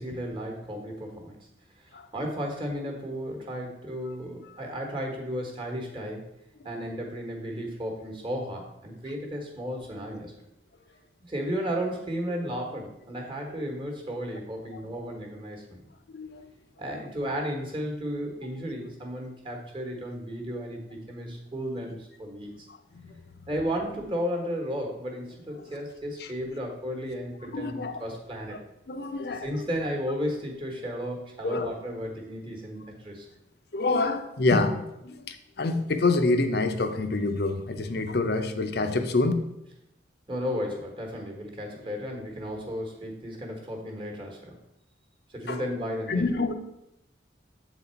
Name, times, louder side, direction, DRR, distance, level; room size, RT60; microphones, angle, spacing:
voice 1, 0.0-1.5 1.8-6.3 6.6-10.3 11.2-15.8 16.8-22.7 23.5-28.6 29.3-33.3 40.3-44.6 45.3-46.2, equal, 25° right, 2 dB, 1.2 m, -34 dB
voice 2, 27.5-28.0 28.9-29.5 31.4-31.7 33.7-39.3 45.5-45.6 46.1-46.5, left 3 dB, 55° left, 8 dB, 0.6 m, -27 dB
7.6 x 4.0 x 4.4 m, 0.85 s
head